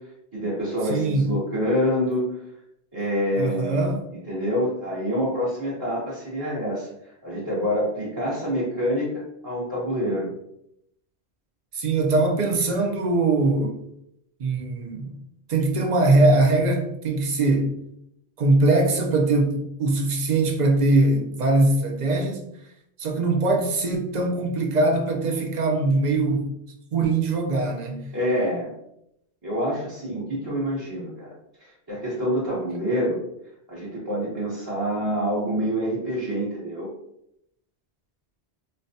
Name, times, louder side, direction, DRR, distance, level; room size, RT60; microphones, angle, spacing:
voice 1, 0.3-2.3 2.9-3.9 4.3-6.9 7.2-10.3 28.1-28.7 29.4-31.3 31.6-33.2 33.7-36.9, equal, 20° right, -10 dB, 0.8 m, -26 dB
voice 2, 0.9-1.3 3.4-4.0 11.7-13.8 14.4-15.2 15.5-17.7 18.4-22.4 23.0-26.5 26.9-28.1, right 2 dB, 50° right, 2 dB, 0.5 m, -21 dB
4.2 x 2.2 x 2.7 m, 0.77 s
omnidirectional pair, 1.1 m